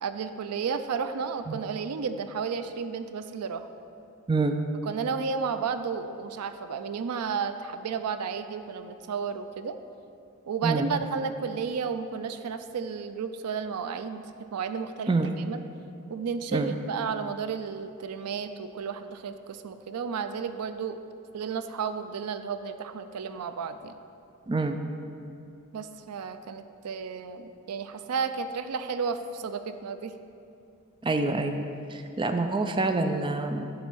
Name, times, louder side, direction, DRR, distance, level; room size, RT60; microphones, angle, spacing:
voice 1, 0.0-3.7 4.8-9.7 10.5-14.2 14.5-15.1 15.5-15.6 16.1-21.0 21.3-24.0 25.7-30.1, right 6 dB, 85° right, 10 dB, 0.4 m, -32 dB
voice 2, 24.5-24.8 31.0-31.6 31.9-33.7, right 3 dB, 20° right, 6 dB, 0.4 m, -26 dB
9.6 x 4.1 x 6.2 m, 2.6 s
head